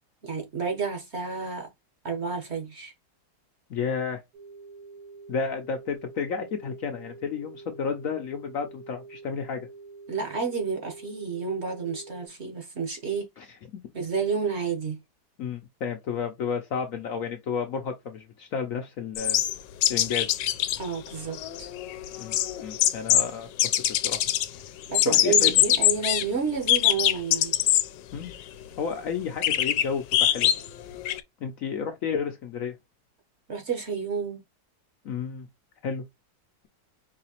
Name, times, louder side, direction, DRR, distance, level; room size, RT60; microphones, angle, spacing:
voice 1, 0.2-1.7 2.0-2.9 10.1-13.3 13.9-15.0 20.8-21.7 24.9-27.5 33.5-34.4, right 5 dB, 45° right, 1.1 m, -30 dB
voice 2, 3.7-4.2 5.3-9.7 13.4-13.6 15.4-19.4 19.9-20.4 22.2-23.5 23.9-24.2 25.0-25.5 28.1-28.3 28.8-30.5 31.4-32.8 35.0-35.5 35.8-36.0, left 6 dB, 65° left, 0.9 m, -31 dB
sound 1, 4.3-12.3, right 4 dB, 70° right, 1.5 m, -46 dB
sound 2, 19.2-20.8 21.1-21.2 21.3-23.3 23.6-24.5 24.8-26.2 26.7-27.9 28.3-28.4 29.4-31.2, left 12 dB, 85° left, 1.2 m, -23 dB
4.8 x 2.8 x 2.8 m
omnidirectional pair, 1.9 m